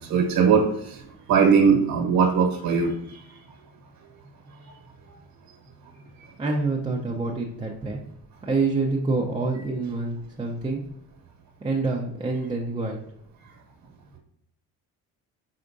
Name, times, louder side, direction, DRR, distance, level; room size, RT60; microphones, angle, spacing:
voice 1, 0.1-1.0 1.3-3.2, right 6 dB, 60° right, 0 dB, 1.2 m, -20 dB
voice 2, 6.4-8.0 8.4-10.8 11.6-13.0, right 3 dB, 15° right, -2 dB, 0.6 m, -27 dB
4.7 x 4.2 x 2.6 m, 0.78 s
cardioid pair, 95°, 38 cm